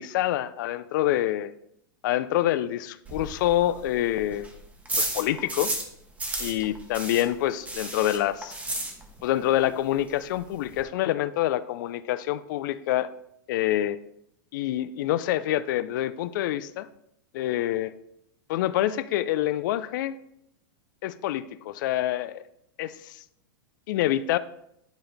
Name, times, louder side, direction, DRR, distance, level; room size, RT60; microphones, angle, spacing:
voice 1, 0.0-1.5 2.0-4.5 5.0-5.7 6.4-8.6 9.2-13.1 13.5-14.0 14.5-16.9 17.3-17.9 18.5-20.2 21.0-22.4 22.8-23.2 23.9-24.4, left 13 dB, 60° left, 15 dB, 0.4 m, -26 dB
sound 1, 3.0-5.9 6.2-9.4 9.6-9.7 10.1-10.2 10.3-10.8, right 2 dB, 10° right, 1.1 m, -33 dB
10.5 x 3.9 x 3.4 m, 0.77 s
hypercardioid pair, 125°, 12 cm